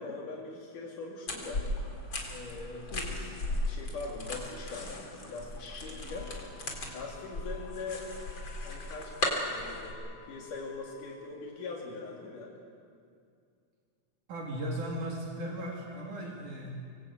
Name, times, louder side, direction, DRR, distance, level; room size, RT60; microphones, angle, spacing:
voice 1, 0.0-1.7 2.3-6.4 6.9-8.1 8.6-9.1 9.5-12.5, left 3 dB, 80° left, -2 dB, 4.1 m, -42 dB
sound 1, 1.3-9.9, left 1 dB, 35° left, 4.1 m, -37 dB
sound 2, 6.1-11.1, left 16 dB, 15° left, 7.0 m, -56 dB
voice 2, 14.3-16.7, right 1 dB, 75° right, -2 dB, 4.2 m, -36 dB
26.0 x 22.0 x 8.6 m, 2.3 s
omnidirectional pair, 3.6 m